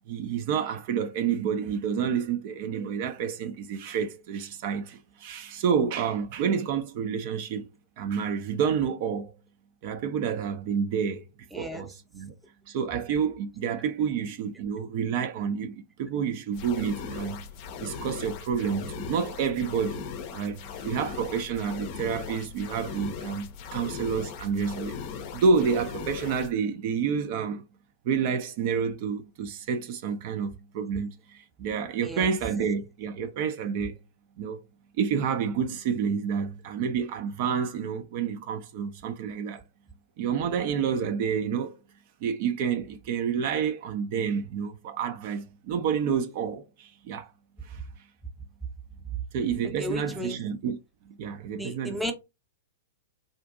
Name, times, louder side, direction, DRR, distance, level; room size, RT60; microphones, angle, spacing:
voice 1, 0.1-7.7 8.0-9.3 9.8-11.3 11.6-12.3 12.7-17.4 17.8-25.0 25.3-27.6 28.0-34.0 34.4-34.6 35.0-39.6 40.2-41.8 42.2-47.3 47.6-47.8 49.3-50.8 51.1-52.0, right 6 dB, 45° right, 0.5 m, -29 dB
voice 2, 11.5-11.9 32.0-32.3 49.8-50.4 51.5-52.1, left 1 dB, ahead, 0.7 m, -34 dB
sound 1, 16.5-26.5, left 6 dB, 40° left, 0.6 m, -38 dB
3.7 x 2.5 x 2.4 m
figure-of-eight pair, 105°, 0 cm